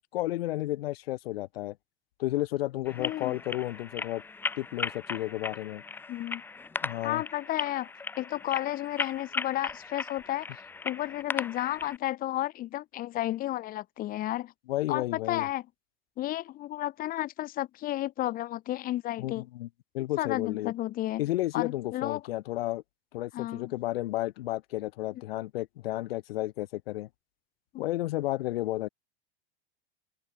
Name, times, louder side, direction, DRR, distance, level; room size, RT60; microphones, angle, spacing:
voice 1, 0.1-1.8 2.2-4.2 4.6-5.8 6.8-7.2 14.7-15.5 19.2-19.7 19.9-20.7 21.2-22.8 23.1-27.1 27.8-28.9, left 16 dB, 70° left, 4.2 m, -32 dB
sound 1, 2.9-12.0, left 4 dB, 5° left, 0.8 m, -37 dB
voice 2, 3.0-3.4 6.1-6.4 7.0-7.9 8.2-10.6 10.8-14.5 14.9-15.6 16.2-19.4 20.2-21.2 21.5-22.2 23.3-23.7 27.7-27.8, left 14 dB, 30° left, 2.9 m, -32 dB
supercardioid pair, 165°, 31 cm